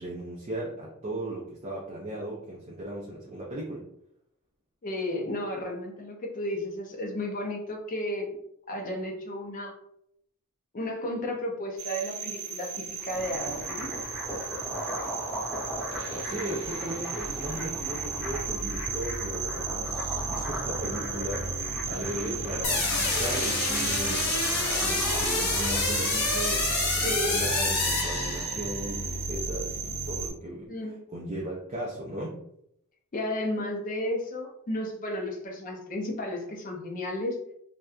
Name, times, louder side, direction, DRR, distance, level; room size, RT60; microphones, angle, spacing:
voice 1, 0.0-3.9 16.2-24.2 24.8-30.7 31.1-32.4, right 1 dB, 30° right, -4 dB, 0.4 m, -37 dB
voice 2, 4.8-8.4 8.7-9.7 10.7-13.9 27.0-27.4 30.7-31.0 33.1-37.4, left 1 dB, 35° left, 1 dB, 0.4 m, -33 dB
sound 1, 11.8-30.3, right 4 dB, 65° right, 0.7 m, -34 dB
sound 2, 12.9-26.7, equal, 5° right, 0.9 m, -38 dB
sound 3, 22.6-28.8, left 3 dB, 90° left, 0.7 m, -28 dB
2.7 x 2.1 x 2.3 m, 0.74 s
head